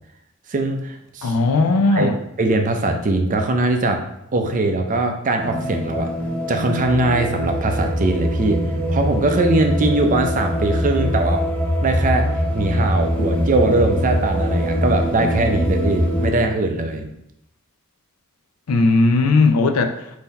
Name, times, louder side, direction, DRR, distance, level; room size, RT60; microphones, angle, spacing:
voice 1, 0.5-1.3 2.0-2.1 2.4-4.0 4.3-6.1 6.5-8.6 8.9-11.5 11.8-12.3 12.5-17.1, right 2 dB, 35° right, 5 dB, 0.5 m, -21 dB
voice 2, 1.2-2.2 18.7-20.2, left 3 dB, 85° left, 6 dB, 0.5 m, -17 dB
sound 1, 5.4-16.3, equal, 5° left, 0.7 m, -22 dB
3.8 x 2.7 x 4.0 m, 0.80 s
head